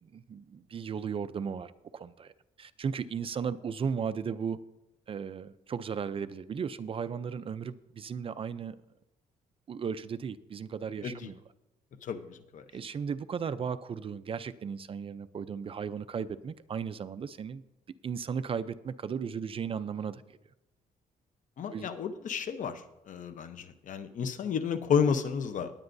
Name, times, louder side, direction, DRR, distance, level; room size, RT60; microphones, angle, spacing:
voice 1, 0.0-2.3 2.6-4.6 5.1-8.8 9.7-11.4 12.7-17.6 18.0-20.2 21.7-21.9, right 6 dB, 40° right, 13 dB, 0.4 m, -35 dB
voice 2, 12.0-12.6 21.6-22.8 23.1-25.7, left 6 dB, 60° left, 10 dB, 0.8 m, -31 dB
19.0 x 8.8 x 2.6 m, 0.95 s
cardioid pair, 115°, 15 cm